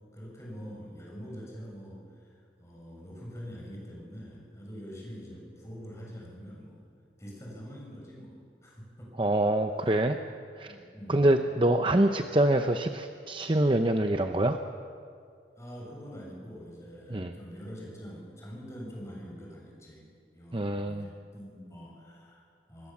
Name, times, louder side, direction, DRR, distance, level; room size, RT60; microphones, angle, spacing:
voice 1, 0.1-2.3 2.6-6.8 7.2-9.1 9.8-10.0 10.6-11.3 15.6-22.9, equal, 15° left, -3 dB, 6.9 m, -45 dB
voice 2, 9.2-10.2 10.6-10.7 11.1-14.6 17.1-17.3 20.5-21.1, right 1 dB, 30° right, 6 dB, 0.7 m, -25 dB
25.5 x 20.0 x 7.3 m, 2.3 s
head